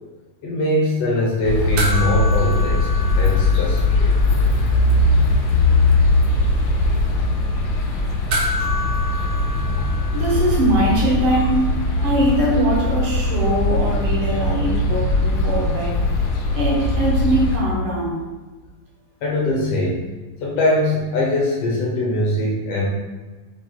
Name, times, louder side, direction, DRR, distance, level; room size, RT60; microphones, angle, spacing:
voice 1, 0.4-2.9 3.2-4.2 19.2-20.1 20.4-22.9, left 1 dB, 70° left, -3 dB, 1.6 m, -21 dB
sound 1, 1.4-17.6, left 2 dB, 90° left, 2.2 m, -20 dB
sound 2, 1.8-4.4 4.7-4.8 8.3-10.9 13.1-13.2, equal, 75° right, 2.0 m, -29 dB
voice 2, 10.1-11.7 12.0-16.0 16.5-18.2, right 1 dB, 55° right, -5 dB, 1.9 m, -21 dB
6.0 x 3.8 x 2.3 m, 1.3 s
omnidirectional pair, 3.3 m